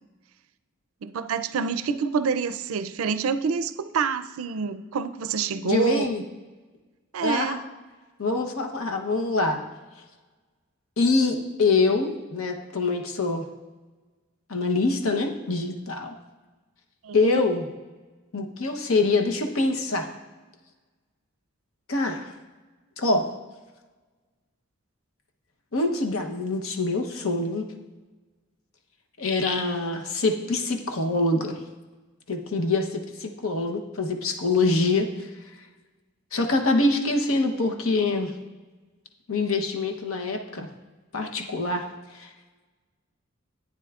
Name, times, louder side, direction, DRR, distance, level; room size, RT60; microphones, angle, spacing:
voice 1, 1.0-6.1 7.1-7.6 17.0-17.4, right 6 dB, 85° right, 12 dB, 0.4 m, -27 dB
voice 2, 5.6-6.2 7.2-7.5 8.2-9.6 11.0-13.5 14.5-16.1 17.1-17.6 18.3-20.1 21.9-22.3 23.0-23.2 25.7-27.7 29.2-31.6 32.3-35.1 36.3-38.3 39.3-40.7 41.1-41.8 42.1-42.3, left 3 dB, 85° left, 4 dB, 0.9 m, -25 dB
10.5 x 9.0 x 2.4 m, 1.3 s
head